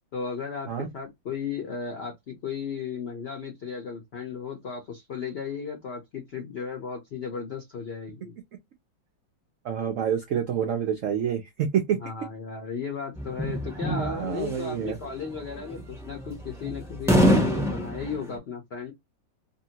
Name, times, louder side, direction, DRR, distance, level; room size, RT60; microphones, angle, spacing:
voice 1, 0.1-8.3 12.0-18.9, left 6 dB, 65° left, 0.6 m, -35 dB
voice 2, 9.6-12.0 13.8-15.0, right 8 dB, 80° right, 0.7 m, -28 dB
sound 1, 13.2-18.3, equal, 5° right, 0.4 m, -25 dB
2.8 x 2.7 x 2.8 m
omnidirectional pair, 2.0 m